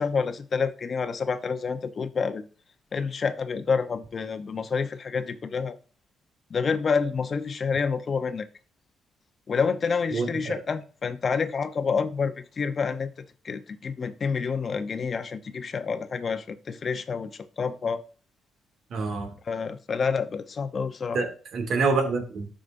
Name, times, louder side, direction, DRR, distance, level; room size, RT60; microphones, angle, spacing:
voice 1, 0.0-2.5 2.9-5.8 6.5-8.5 9.5-13.1 13.4-18.0 19.5-21.2, left 5 dB, 45° left, 0.8 m, -28 dB
voice 2, 10.1-10.5 18.9-19.3 21.1-22.5, right 4 dB, 65° right, 2.2 m, -27 dB
12.0 x 5.0 x 2.6 m
cardioid pair, 90°, 0 cm